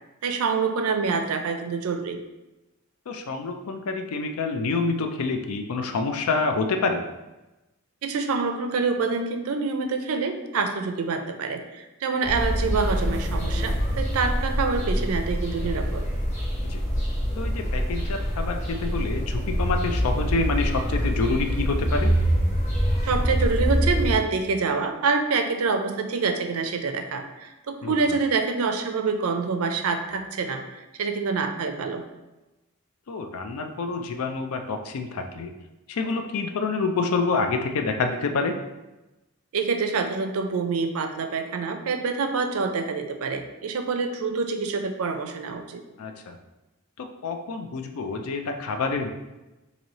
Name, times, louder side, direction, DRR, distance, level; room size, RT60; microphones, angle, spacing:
voice 1, 0.2-2.2 8.0-16.0 23.0-32.0 39.5-45.8, right 4 dB, 80° right, 6 dB, 0.4 m, -26 dB
voice 2, 3.1-7.0 16.6-16.8 17.4-22.1 27.8-27.9 33.1-35.5 35.9-38.5 46.0-46.4 47.0-49.1, left 4 dB, 85° left, 6 dB, 0.4 m, -27 dB
sound 1, 12.2-24.2, equal, 35° left, 1.3 m, -25 dB
3.0 x 2.7 x 4.0 m, 1.0 s
head